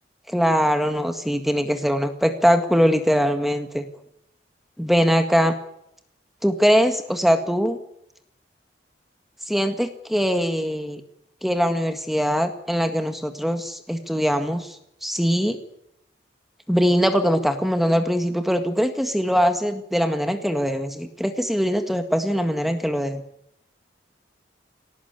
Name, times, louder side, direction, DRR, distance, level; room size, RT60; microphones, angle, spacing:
voice 1, 0.3-3.9 4.8-5.5 6.4-7.8 9.5-11.0 11.4-15.6 16.7-23.2, equal, ahead, 7 dB, 1.8 m, -22 dB
22.5 x 19.0 x 9.6 m, 0.76 s
head